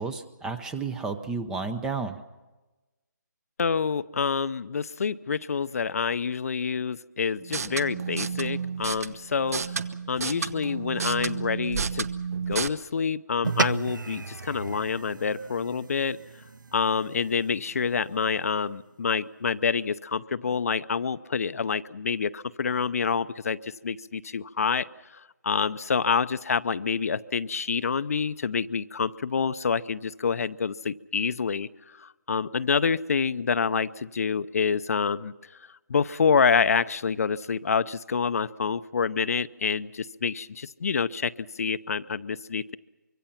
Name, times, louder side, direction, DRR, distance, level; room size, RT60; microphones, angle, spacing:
voice 1, 0.0-2.2, right 4 dB, 5° right, 11 dB, 0.7 m, -32 dB
voice 2, 3.6-9.6 10.1-12.1 12.5-16.2 16.7-24.9 25.1-31.7 32.0-35.3 35.9-42.8, left 5 dB, 50° left, 14 dB, 0.7 m, -27 dB
sound 1, 7.4-12.7, right 5 dB, 50° right, 1.1 m, -31 dB
sound 2, 13.4-18.1, right 4 dB, 85° right, 0.9 m, -33 dB
25.0 x 24.0 x 5.8 m, 1.1 s
figure-of-eight pair, 160°, 10 cm